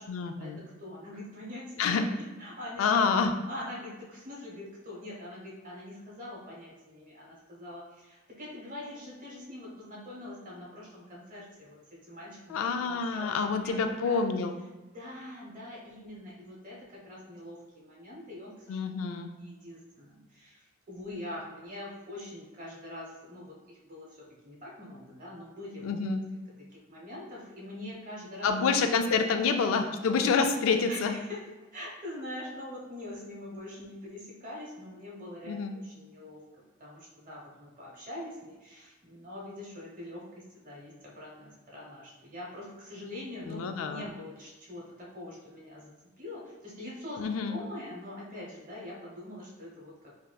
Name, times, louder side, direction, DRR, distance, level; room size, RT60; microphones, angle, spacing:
voice 1, 0.1-0.6 1.8-2.0 2.8-3.3 12.5-14.5 18.7-19.3 25.8-26.2 28.4-31.2 35.4-35.7 43.5-44.0 47.2-47.6, left 5 dB, 85° left, 7 dB, 0.3 m, -27 dB
voice 2, 0.8-1.7 2.1-2.8 3.5-13.4 13.6-14.2 14.9-18.8 19.4-25.9 26.7-28.5 29.1-29.4 30.9-31.4 31.7-36.4 36.8-50.2, left 1 dB, 40° right, -4 dB, 0.9 m, -44 dB
3.3 x 2.7 x 2.2 m, 1.1 s
head